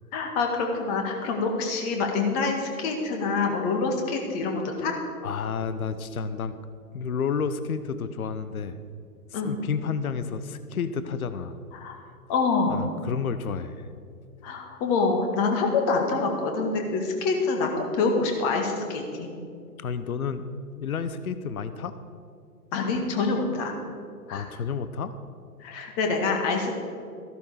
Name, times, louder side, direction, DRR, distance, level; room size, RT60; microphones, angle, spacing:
voice 1, 0.1-4.9 9.3-9.5 11.7-11.9 12.3-12.9 14.4-19.3 22.7-23.7 24.3-24.5 25.6-26.7, left 4 dB, 25° left, 3 dB, 1.7 m, -26 dB
voice 2, 5.2-6.6 6.9-8.8 9.3-11.6 12.7-13.9 19.8-22.0 24.3-25.2, left 6 dB, 65° left, 12 dB, 0.8 m, -31 dB
14.0 x 11.5 x 4.9 m, 2.4 s
figure-of-eight pair, 125°, 47 cm